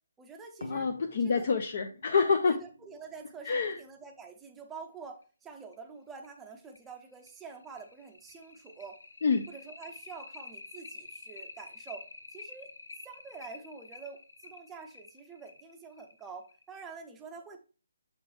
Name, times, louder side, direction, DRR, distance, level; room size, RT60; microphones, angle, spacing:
voice 1, 0.2-0.9 1.2-1.5 2.4-9.0 9.5-12.7 13.0-17.6, right 5 dB, 10° right, 3 dB, 0.6 m, -47 dB
sound 1, 0.6-3.8 5.2-5.3 5.7-5.8 6.2-6.3 6.8-16.8, left 2 dB, 90° left, 0.9 m, -48 dB
voice 2, 0.7-2.6 3.4-3.8 9.2-9.5, left 5 dB, 45° left, 5 dB, 0.6 m, -27 dB
6.8 x 4.4 x 3.2 m, 0.36 s
hypercardioid pair, 170°, 0 cm